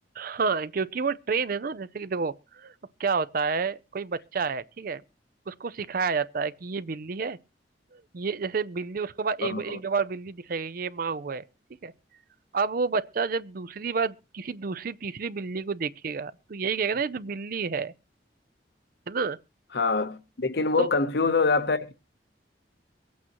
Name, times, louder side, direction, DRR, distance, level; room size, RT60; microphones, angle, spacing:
voice 1, 0.2-2.7 3.0-5.0 5.5-7.4 8.1-11.4 11.8-11.9 12.5-17.9 19.1-19.4 20.8-20.9, right 5 dB, 50° right, 0.5 m, -29 dB
voice 2, 9.4-9.8 19.7-21.9, left 4 dB, 60° left, 0.8 m, -25 dB
23.5 x 8.5 x 3.0 m
head